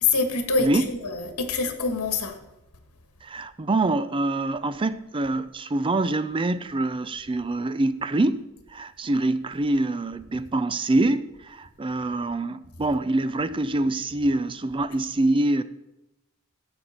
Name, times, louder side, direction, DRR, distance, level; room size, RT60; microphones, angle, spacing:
voice 1, 0.0-2.4, left 4 dB, 85° left, 1.6 m, -25 dB
voice 2, 3.2-8.4 8.7-15.6, right 2 dB, 25° right, 0.4 m, -25 dB
15.5 x 8.3 x 4.4 m
head